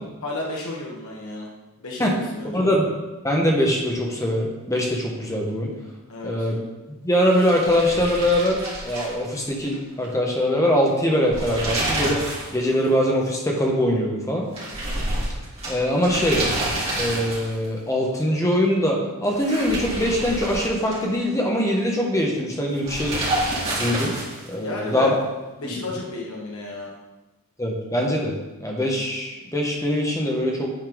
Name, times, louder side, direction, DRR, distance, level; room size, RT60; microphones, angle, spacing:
voice 1, 0.2-1.5 1.8-2.7 6.1-6.5 24.6-25.1 25.6-27.0, left 2 dB, 65° left, -2 dB, 1.4 m, -32 dB
voice 2, 2.5-5.7 6.2-6.6 7.0-12.2 12.5-14.5 15.7-16.5 17.0-23.2 23.7-24.2 24.5-25.1 25.6-25.7 27.6-30.7, equal, 15° left, -1 dB, 1.3 m, -22 dB
sound 1, 7.3-9.8 10.0-10.1 11.1-12.5 12.8-12.9 14.5-17.7 19.3-21.2 22.8-24.5, right 1 dB, 30° right, 2.4 m, -28 dB
9.2 x 4.4 x 5.3 m, 1.1 s
head